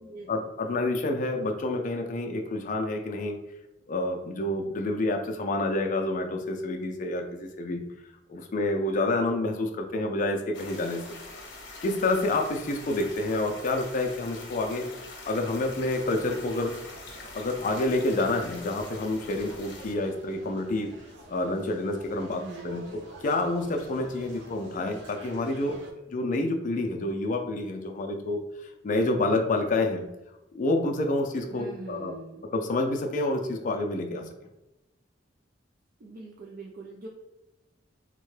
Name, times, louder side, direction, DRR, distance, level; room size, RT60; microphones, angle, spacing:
voice 1, 0.3-3.4 3.9-7.8 8.3-11.2 11.8-14.8 15.2-16.7 17.3-20.9 21.3-22.8 23.2-25.8 26.1-30.1 30.5-32.1 32.5-34.3, left 2 dB, 45° left, 3 dB, 0.4 m, -28 dB
sound 1, 10.5-19.9, left 2 dB, 75° left, 0.8 m, -44 dB
sound 2, 15.4-25.9, right 1 dB, 75° right, 0.8 m, -49 dB
voice 2, 22.3-22.9 31.5-32.4 36.0-37.1, right 3 dB, 55° right, -1 dB, 0.4 m, -42 dB
3.6 x 2.1 x 3.2 m, 0.94 s
head